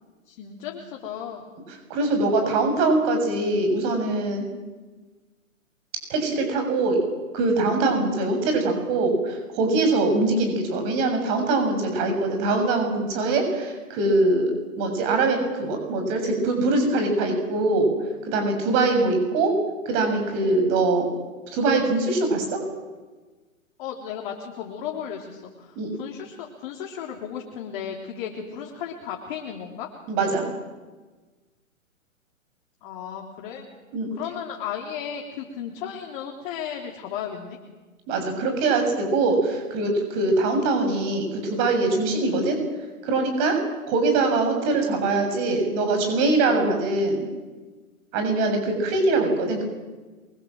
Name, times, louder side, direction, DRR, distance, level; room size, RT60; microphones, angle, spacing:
voice 1, 0.3-1.5 23.8-29.9 32.8-33.7 34.1-37.6, left 8 dB, 35° left, 1 dB, 3.5 m, -35 dB
voice 2, 1.9-4.4 6.1-7.1 7.3-14.5 14.8-17.9 18.3-19.5 19.9-21.1 21.5-22.6 25.8-25.9 30.1-30.5 33.9-34.1 38.1-42.6 43.0-43.6 43.9-47.3 48.1-49.6, right 2 dB, 30° right, 4 dB, 7.2 m, -23 dB
27.5 x 24.0 x 7.8 m, 1.3 s
hypercardioid pair, 150°, 41 cm